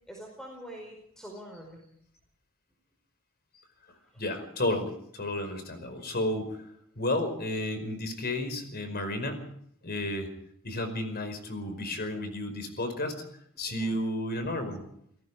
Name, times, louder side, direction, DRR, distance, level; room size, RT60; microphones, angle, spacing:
voice 1, 0.1-1.9 3.9-4.2 13.7-14.0, equal, 5° left, 0 dB, 4.7 m, -45 dB
voice 2, 4.2-6.6 7.0-9.4 9.8-10.3 10.6-13.2 13.6-14.8, left 1 dB, 45° left, 8 dB, 5.1 m, -32 dB
29.0 x 18.0 x 5.0 m, 0.69 s
head